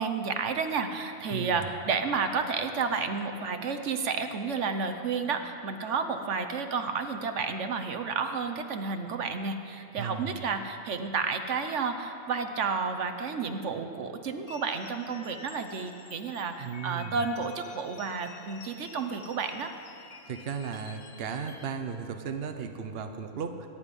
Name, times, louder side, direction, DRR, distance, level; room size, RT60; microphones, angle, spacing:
voice 1, 0.0-19.7, right 5 dB, 75° right, 7 dB, 1.2 m, -31 dB
voice 2, 1.3-1.7 10.0-10.3 16.6-17.2 20.2-23.7, right 6 dB, 55° right, 6 dB, 1.0 m, -36 dB
sound 1, 14.5-21.7, left 5 dB, 80° left, 1.3 m, -50 dB
23.0 x 10.5 x 5.3 m, 2.8 s
omnidirectional pair, 1.3 m